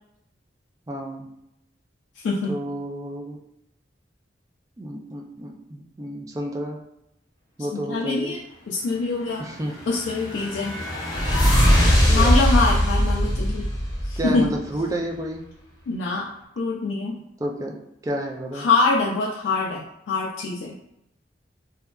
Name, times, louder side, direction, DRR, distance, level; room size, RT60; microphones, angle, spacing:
voice 1, 0.9-1.3 2.5-3.4 4.8-6.8 7.6-8.3 9.4-9.7 11.9-12.4 14.2-15.4 17.4-17.7 18.0-18.7, right 1 dB, 20° right, 2 dB, 0.3 m, -30 dB
voice 2, 2.2-2.6 7.7-8.4 8.7-9.4 9.9-10.8 12.1-13.7 14.1-14.5 15.9-16.3 16.6-17.2 18.5-20.8, left 3 dB, 85° left, -2 dB, 0.3 m, -24 dB
sound 1, 9.6-14.6, equal, 25° left, 0.8 m, -20 dB
2.7 x 2.3 x 2.3 m, 0.83 s
head